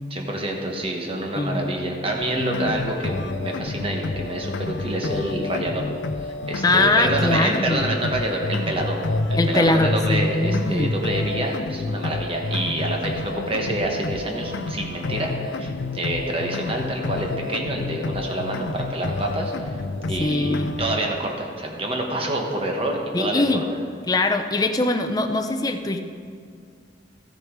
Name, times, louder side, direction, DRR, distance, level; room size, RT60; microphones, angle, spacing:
voice 1, 0.1-5.8 6.2-9.0 9.3-19.8 20.0-23.6, right 1 dB, 30° right, 1 dB, 1.2 m, -27 dB
voice 2, 1.4-1.7 6.6-7.9 9.4-11.0 20.2-20.8 23.1-23.7 24.1-26.0, left 2 dB, 20° left, 6 dB, 0.5 m, -22 dB
sound 1, 2.2-21.1, left 2 dB, 90° left, 0.5 m, -29 dB
14.0 x 6.7 x 4.7 m, 2.2 s
head